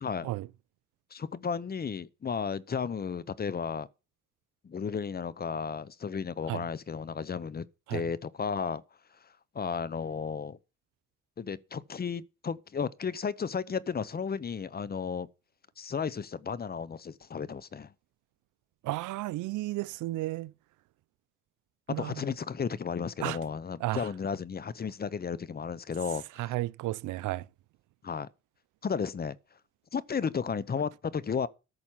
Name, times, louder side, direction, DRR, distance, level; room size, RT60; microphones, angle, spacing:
voice 1, 0.0-0.3 1.1-3.9 4.6-8.8 9.2-10.6 11.4-15.3 15.8-17.9 22.0-26.5 28.0-28.3 28.8-29.4 29.9-31.5, left 6 dB, 30° left, 0.8 m, -34 dB
voice 2, 18.8-20.5 21.9-22.2 23.2-23.4 23.8-24.0 26.4-27.4, right 17 dB, 85° right, 0.5 m, -33 dB
13.5 x 6.1 x 5.7 m
cardioid pair, 90°, 30 cm